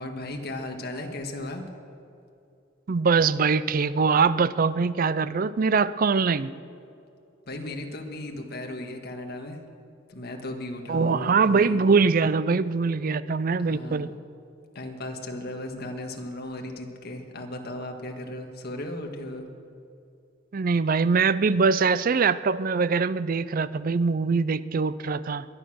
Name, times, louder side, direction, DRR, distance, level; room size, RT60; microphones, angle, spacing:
voice 1, 0.0-1.6 7.4-9.6 10.1-11.8 13.6-14.1 14.7-19.5, left 1 dB, 55° left, 3 dB, 1.7 m, -36 dB
voice 2, 2.9-6.5 10.9-14.1 20.5-25.5, right 5 dB, 45° right, 16 dB, 0.4 m, -23 dB
21.5 x 9.8 x 6.3 m, 2.6 s
head